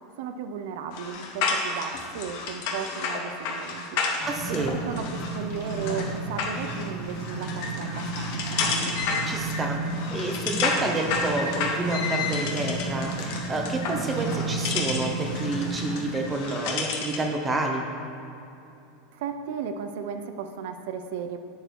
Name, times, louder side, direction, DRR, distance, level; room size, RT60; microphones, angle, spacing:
voice 1, 0.2-4.0 4.5-8.3 8.6-9.0 19.1-21.4, right 7 dB, 60° right, 8 dB, 0.5 m, -35 dB
sound 1, 0.9-17.3, left 4 dB, 50° left, 1.1 m, -31 dB
sound 2, 4.2-16.3, right 3 dB, 80° right, 1.9 m, -33 dB
voice 2, 4.3-4.8 9.2-9.8 10.1-17.8, right 2 dB, 15° right, 2 dB, 0.6 m, -29 dB
8.9 x 6.6 x 4.6 m, 2.8 s
supercardioid pair, 170°, 0 cm